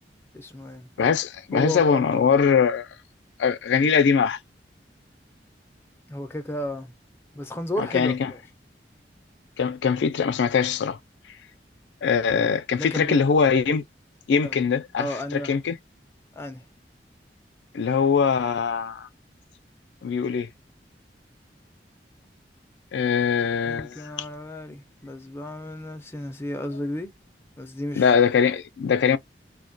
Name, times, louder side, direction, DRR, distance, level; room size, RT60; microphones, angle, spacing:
voice 1, 0.3-0.9 1.5-2.0 6.1-6.9 7.4-8.4 12.8-13.2 14.4-14.6 15.0-15.6 16.4-16.6 23.7-27.1 27.6-28.1, left 1 dB, 15° left, 0.5 m, -33 dB
voice 2, 1.0-2.9 3.4-4.4 7.8-8.3 9.6-11.0 12.0-13.8 14.3-15.8 17.7-19.1 20.0-20.5 22.9-24.3 28.0-29.2, left 6 dB, 90° left, 0.4 m, -22 dB
2.2 x 2.2 x 2.5 m
head